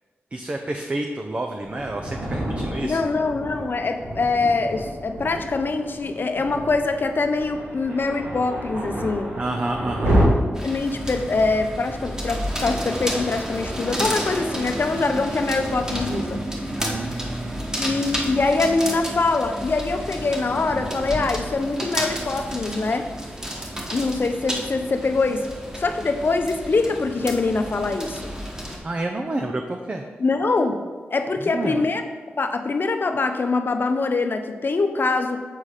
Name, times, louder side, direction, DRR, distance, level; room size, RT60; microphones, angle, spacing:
voice 1, 0.3-3.0 9.4-10.2 16.8-17.6 28.8-30.0 31.4-31.8, right 2 dB, 30° right, 3 dB, 0.6 m, -29 dB
Thunder, 1.6-10.2, equal, 85° right, 2.3 m, -29 dB
voice 2, 2.8-9.4 10.6-16.4 17.8-23.1 23.9-25.5 25.8-28.3 30.2-30.8 31.1-32.0 32.4-35.4, left 3 dB, 50° left, 6 dB, 0.6 m, -24 dB
sound 1, 10.5-28.8, equal, 15° right, 1.3 m, -31 dB
7.4 x 4.1 x 4.9 m, 1.4 s
cardioid pair, 70°, 4 cm